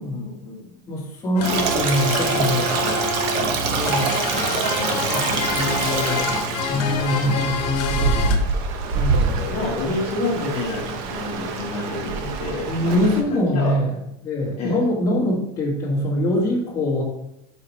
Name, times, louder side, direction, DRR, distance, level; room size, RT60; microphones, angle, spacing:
voice 1, 0.0-0.8 9.5-13.8 14.6-14.8, left 2 dB, 35° left, -4 dB, 1.4 m, -29 dB
voice 2, 0.9-2.7 3.7-4.1 5.0-6.3 6.7-8.3 8.9-9.6 12.7-13.9 14.2-17.0, left 1 dB, 15° left, -4 dB, 1.6 m, -23 dB
sound 1, 1.4-8.4, left 4 dB, 90° left, 0.9 m, -27 dB
Stream, 1.4-13.2, right 5 dB, 50° right, 0.9 m, -25 dB
5.5 x 4.5 x 4.2 m, 0.78 s
cardioid pair, 170°, 20 cm